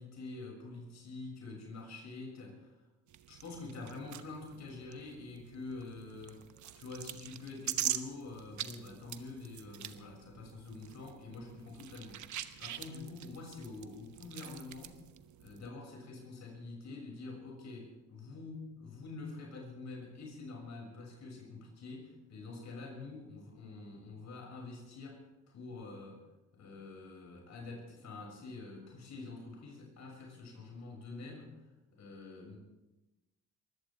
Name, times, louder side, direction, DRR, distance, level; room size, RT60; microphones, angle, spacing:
voice 1, 0.0-2.8 3.3-6.4 6.7-12.2 12.6-15.0 15.4-26.2 26.5-31.6 31.9-32.6, left 3 dB, 65° left, 0 dB, 6.8 m, -46 dB
sound 1, 3.1-15.7, right 11 dB, 70° right, 1.0 m, -44 dB
22.5 x 16.5 x 3.6 m, 1.0 s
cardioid pair, 90°, 30 cm